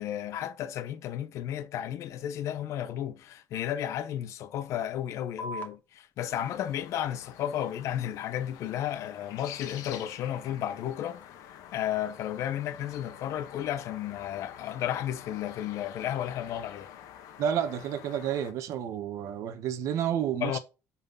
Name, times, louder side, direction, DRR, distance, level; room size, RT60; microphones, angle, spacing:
voice 1, 0.0-16.9 20.4-20.6, left 11 dB, 55° left, 0.7 m, -33 dB
sound 1, 5.4-12.4, right 1 dB, 25° left, 1.2 m, -49 dB
sound 2, 6.3-18.5, left 9 dB, 70° left, 1.2 m, -48 dB
voice 2, 17.4-20.6, right 9 dB, 55° right, 1.1 m, -30 dB
8.7 x 4.3 x 5.4 m
cardioid pair, 155°, 6 cm